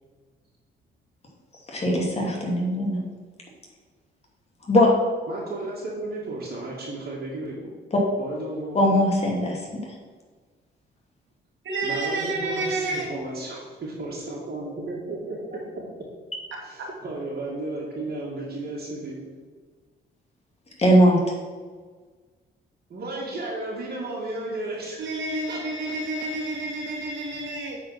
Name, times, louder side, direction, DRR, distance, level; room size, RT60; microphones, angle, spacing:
voice 1, 1.7-3.0 4.6-4.9 7.9-8.0 8.7-9.6 20.8-21.2, equal, 30° left, 2.6 m, -20 dB
voice 2, 5.3-7.7 8.2-8.8 11.8-15.6 16.6-19.2 22.9-25.1 25.5-25.6, right 2 dB, 50° right, 2.5 m, -33 dB
voice 3, 11.6-13.1 25.0-27.8, right 2 dB, 70° right, 2.4 m, -29 dB
8.6 x 4.9 x 6.0 m
cardioid pair, 90°, 20 cm